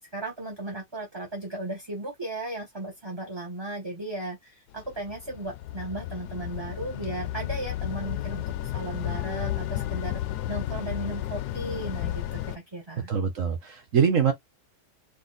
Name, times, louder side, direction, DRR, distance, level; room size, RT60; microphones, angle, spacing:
voice 1, 0.0-10.2 10.5-13.1, right 2 dB, 15° right, 1.2 m, -36 dB
sound 1, 4.7-12.6, left 13 dB, 80° left, 1.2 m, -33 dB
voice 2, 13.1-14.3, right 7 dB, 55° right, 1.4 m, -23 dB
4.2 x 2.6 x 4.0 m
omnidirectional pair, 1.8 m